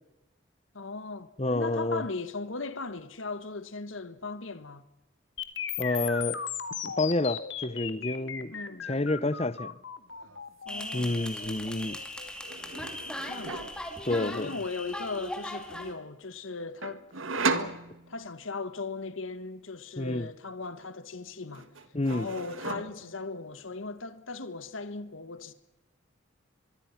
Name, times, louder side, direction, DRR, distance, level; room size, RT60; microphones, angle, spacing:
voice 1, 0.7-4.8 8.5-8.9 10.6-11.2 13.3-13.7 14.1-17.0 17.5-17.8 18.1-21.7 22.1-25.5, left 3 dB, 80° left, 1.6 m, -38 dB
voice 2, 1.4-2.0 5.8-6.4 6.8-8.5 8.8-9.7 10.9-12.0 14.0-14.5 20.0-20.3 21.9-22.3, left 2 dB, 30° left, 0.9 m, -29 dB
sound 1, 5.4-13.3, left 8 dB, 65° left, 2.1 m, -37 dB
sound 2, 10.1-10.4 10.7-11.5 12.4-13.8 16.8-18.4 20.6-21.2 21.5-23.2, right 4 dB, 85° right, 1.8 m, -36 dB
sound 3, 10.7-15.9, left 1 dB, 5° left, 2.5 m, -39 dB
24.5 x 22.5 x 5.9 m
head